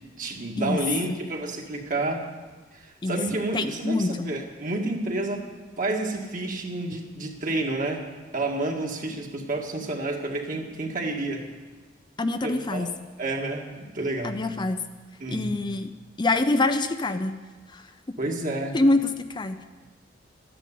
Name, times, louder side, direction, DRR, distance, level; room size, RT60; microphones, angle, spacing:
voice 1, 0.2-2.3 2.7-5.5 5.8-8.0 8.3-11.4 12.4-12.9 13.2-14.4 15.2-15.5 18.2-18.8, right 2 dB, 45° right, 1 dB, 2.1 m, -30 dB
voice 2, 3.5-4.3 12.2-12.9 14.2-14.8 15.3-15.9 16.2-17.3 17.7-17.9 18.7-19.6, left 2 dB, 25° left, 8 dB, 0.5 m, -25 dB
13.0 x 10.0 x 8.5 m, 1.3 s
head